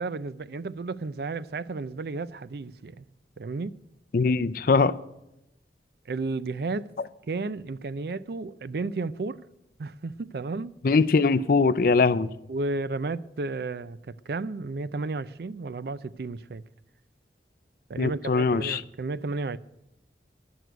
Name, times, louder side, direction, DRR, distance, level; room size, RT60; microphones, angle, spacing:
voice 1, 0.0-3.0 3.4-3.8 6.1-6.9 7.3-9.4 9.8-10.7 12.5-16.6 17.9-19.6, right 3 dB, 60° right, 0.4 m, -33 dB
voice 2, 4.1-4.9 10.8-12.3 18.0-18.8, left 4 dB, 50° left, 0.4 m, -21 dB
11.5 x 6.1 x 9.1 m
head